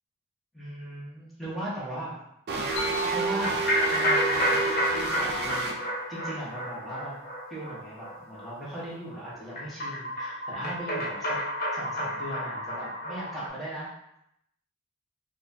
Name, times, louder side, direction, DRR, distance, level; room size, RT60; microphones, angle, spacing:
voice 1, 0.5-2.2 3.1-3.6 3.9-5.8 6.1-7.2 7.5-11.4 11.7-13.9, right 1 dB, ahead, -9 dB, 1.2 m, -38 dB
sound 1, 2.5-5.7, right 3 dB, 50° right, 0.5 m, -29 dB
sound 2, 2.8-6.4, right 3 dB, 90° left, 1.0 m, -38 dB
sound 3, 3.4-13.5, equal, 45° left, 0.8 m, -30 dB
4.0 x 2.5 x 2.7 m, 0.78 s
head